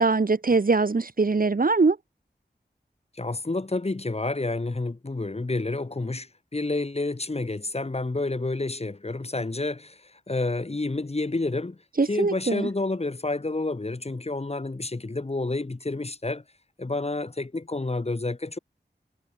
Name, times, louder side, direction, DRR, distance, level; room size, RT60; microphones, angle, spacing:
voice 1, 0.0-2.0 12.0-12.7, right 4 dB, 50° right, 0.8 m, -22 dB
voice 2, 3.1-11.8 12.1-16.4 16.8-18.6, left 2 dB, 35° left, 0.9 m, -29 dB
wide cardioid pair, 55°, 18 cm